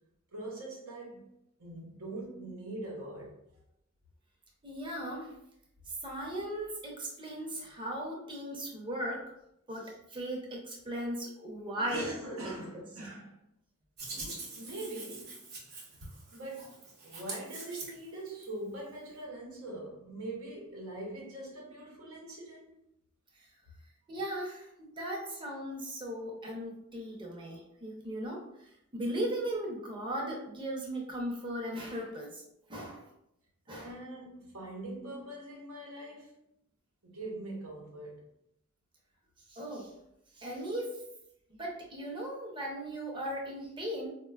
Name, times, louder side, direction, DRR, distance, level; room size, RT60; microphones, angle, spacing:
voice 1, 0.3-1.3 1.6-3.3 11.8-13.3 14.1-15.4 16.3-22.7 33.7-36.4 37.0-38.2, right 1 dB, 90° right, -2 dB, 0.8 m, -42 dB
voice 2, 4.6-5.3 6.0-9.2 9.7-12.0 12.4-12.5 24.1-24.6 25.0-28.4 28.9-32.4 32.7-33.0 33.7-33.9 39.5-39.9 40.4-41.0 41.6-44.1, right 1 dB, 25° right, -2 dB, 0.7 m, -37 dB
Hands, 14.0-18.4, right 3 dB, 50° right, 0.8 m, -44 dB
4.1 x 2.2 x 2.3 m, 0.79 s
head